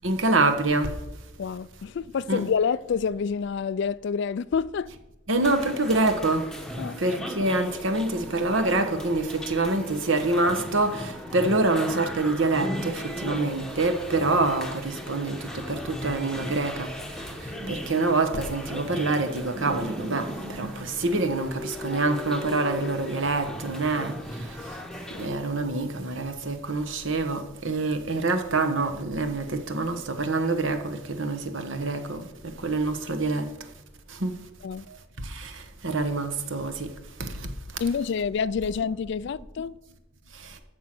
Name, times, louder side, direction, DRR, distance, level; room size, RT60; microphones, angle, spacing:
voice 1, 0.0-0.9 2.3-2.4 5.3-6.4 7.0-16.9 17.7-24.1 25.2-32.2 32.6-33.5 34.2-34.3 35.3-35.5 35.8-36.9 37.2-37.5, right 2 dB, 65° right, 1.3 m, -26 dB
voice 2, 1.4-4.9 6.8-7.0 34.6-34.8 37.8-39.7, left 6 dB, 55° left, 0.3 m, -28 dB
sound 1, 5.4-25.3, equal, 5° left, 1.0 m, -37 dB
13.5 x 6.5 x 6.0 m
head